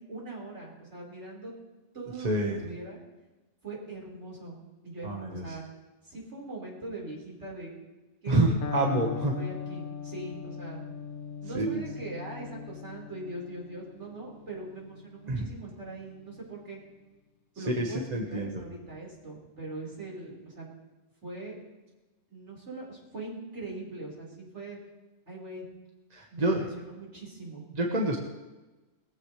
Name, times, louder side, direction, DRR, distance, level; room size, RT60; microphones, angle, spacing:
voice 1, 0.1-1.5 1.9-3.0 3.6-5.6 6.0-7.7 8.2-9.0 9.4-10.8 11.4-16.8 17.6-18.0 18.3-20.7 21.2-21.6 22.3-24.8 25.3-25.7 26.3-27.6, right 2 dB, 60° right, -3 dB, 5.2 m, -41 dB
voice 2, 2.2-2.6 5.0-5.6 8.3-9.3 11.5-11.8 15.3-15.5 17.7-18.5 26.1-26.6 27.7-28.2, right 2 dB, 30° right, 0 dB, 1.5 m, -27 dB
Electric guitar, 8.6-16.5, left 6 dB, 45° left, 0.9 m, -40 dB
21.0 x 15.5 x 3.3 m, 1.1 s
omnidirectional pair, 1.3 m